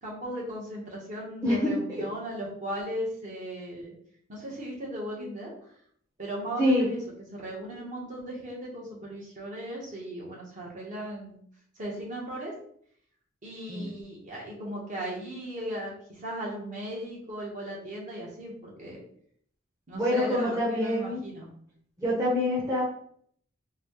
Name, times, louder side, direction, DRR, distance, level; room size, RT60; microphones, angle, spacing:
voice 1, 0.0-3.9 4.3-5.5 6.2-7.0 7.3-11.4 11.8-12.5 13.4-19.0 19.9-21.5, right 1 dB, 40° right, -4 dB, 1.0 m, -37 dB
voice 2, 1.4-1.8 6.6-6.9 13.7-13.9 19.9-21.2 22.0-22.8, left 1 dB, 15° right, -7 dB, 0.8 m, -25 dB
4.1 x 2.2 x 3.0 m, 0.63 s
head